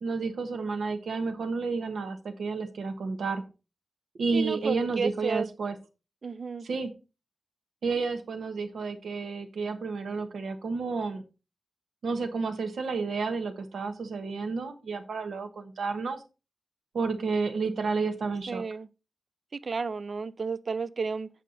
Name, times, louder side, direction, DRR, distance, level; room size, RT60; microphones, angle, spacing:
voice 1, 0.0-3.4 4.2-5.7 6.6-6.9 7.8-11.2 12.0-16.2 16.9-18.6, right 4 dB, 80° right, 1.3 m, -31 dB
voice 2, 4.3-5.5 6.2-6.7 18.5-18.9 19.5-21.3, right 4 dB, 45° right, 0.4 m, -32 dB
8.3 x 5.5 x 3.9 m
wide cardioid pair, 155°, 0 cm